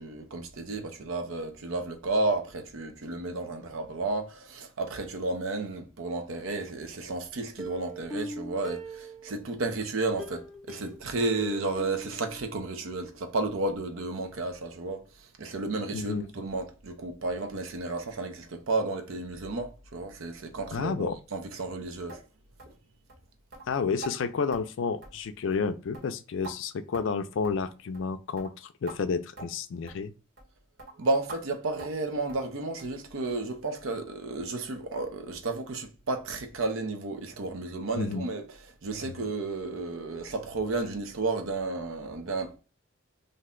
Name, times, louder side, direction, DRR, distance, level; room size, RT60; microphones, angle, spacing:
voice 1, 0.0-22.2 31.0-38.4 38.8-42.6, right 2 dB, 80° right, 0.6 m, -32 dB
Plucked string instrument, 7.6-9.6 10.2-13.0 13.3-13.4 13.7-13.8, right 2 dB, ahead, 0.4 m, -41 dB
voice 2, 15.9-16.3 20.7-21.2 23.7-30.1 38.0-38.3 39.0-39.1, left 5 dB, 65° left, 0.4 m, -31 dB
sound 1, 22.1-22.2 22.6-22.8 23.1-23.2 23.5-23.7 24.0-24.2 24.5-24.7 25.0-25.3 25.5-25.7 25.9-26.6 26.9-27.2 27.4-27.6 27.9-28.1 28.4-28.5 28.9-29.0 29.4-29.5 29.9-30.0 30.4-30.5 30.8-30.9 31.3-31.4 31.8-32.0 32.3-32.5 32.8-33.0 33.3-33.4 33.8-33.9 34.3-34.4, right 3 dB, 60° right, 1.2 m, -44 dB
2.6 x 2.1 x 3.6 m
head